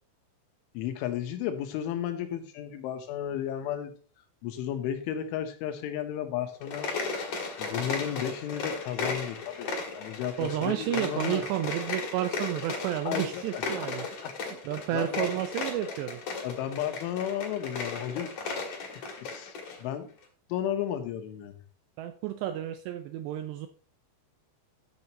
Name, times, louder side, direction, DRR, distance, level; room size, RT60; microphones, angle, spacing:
voice 1, 0.8-4.0 4.4-6.9 7.6-11.4 13.1-13.6 14.2-14.6 14.9-15.3 16.4-18.3 19.2-20.1 20.5-21.5, left 10 dB, 80° left, 7 dB, 3.5 m, -33 dB
sound 1, 6.6-19.8, left 4 dB, 50° left, 2.5 m, -36 dB
voice 2, 10.4-16.2 22.0-23.7, right 12 dB, 85° right, 9 dB, 2.5 m, -31 dB
14.0 x 7.1 x 3.0 m, 0.40 s
omnidirectional pair, 5.6 m